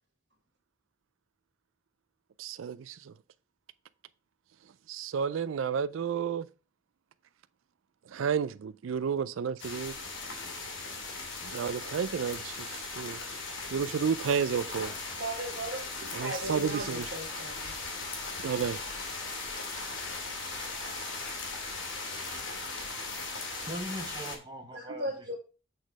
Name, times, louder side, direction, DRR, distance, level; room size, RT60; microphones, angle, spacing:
voice 1, 2.4-3.1 4.9-6.5 8.1-9.9 11.4-13.2 13.7-14.9 16.1-17.0 18.4-18.8, right 7 dB, 90° right, 0.4 m, -31 dB
sound 1, 9.6-24.4, left 3 dB, 75° left, 2.5 m, -38 dB
voice 2, 15.1-17.7 24.7-25.3, right 1 dB, 60° right, 1.4 m, -37 dB
voice 3, 23.7-25.3, right 1 dB, 20° right, 1.5 m, -40 dB
8.0 x 4.3 x 4.7 m
head